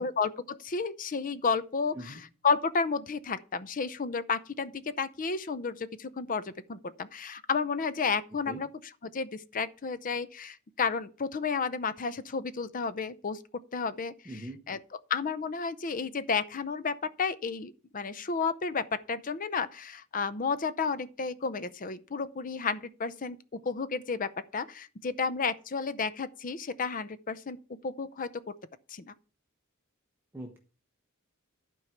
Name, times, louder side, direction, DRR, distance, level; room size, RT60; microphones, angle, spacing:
voice 1, 0.0-2.1 2.4-8.7 9.1-13.4 13.7-14.1 14.7-14.8 15.1-23.4 23.6-27.6 27.8-28.3 28.9-29.1, left 5 dB, 40° left, 0.6 m, -32 dB
voice 2, 14.2-14.6 30.3-30.6, right 1 dB, 10° right, 1.0 m, -41 dB
12.0 x 4.6 x 5.8 m
head